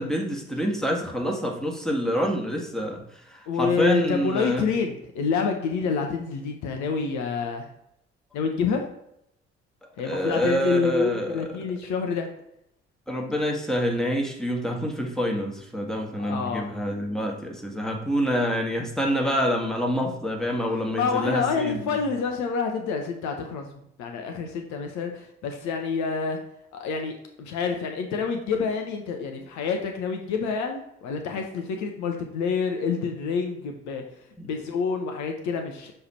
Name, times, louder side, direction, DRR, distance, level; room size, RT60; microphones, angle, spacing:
voice 1, 0.0-3.0 3.3-4.6 10.0-11.5 13.1-21.9 34.4-34.5, equal, ahead, 1 dB, 1.7 m, -27 dB
voice 2, 3.5-7.7 8.3-8.8 10.0-12.3 16.2-16.7 20.9-23.7 24.0-26.4 26.7-27.1 27.4-34.0 34.4-35.9, left 5 dB, 60° left, 4 dB, 0.9 m, -27 dB
6.7 x 3.3 x 4.3 m, 0.76 s
hypercardioid pair, 45°, 32 cm